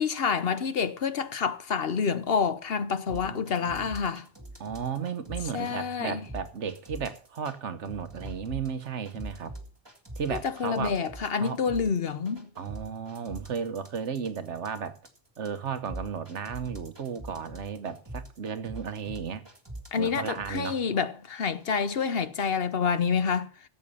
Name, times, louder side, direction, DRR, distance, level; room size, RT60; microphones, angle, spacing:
voice 1, 0.0-4.3 5.5-6.2 10.4-12.5 19.9-23.5, left 6 dB, 60° left, 1.1 m, -28 dB
sound 1, 3.1-5.8 6.3-7.6 7.9-20.8 21.4-22.3, right 1 dB, 20° right, 2.0 m, -43 dB
voice 2, 3.1-3.9 4.6-9.6 10.2-11.0 11.4-11.6 12.6-15.0 15.4-19.4 20.0-20.8, right 7 dB, 80° right, 1.4 m, -34 dB
14.0 x 7.9 x 5.5 m
omnidirectional pair, 1.2 m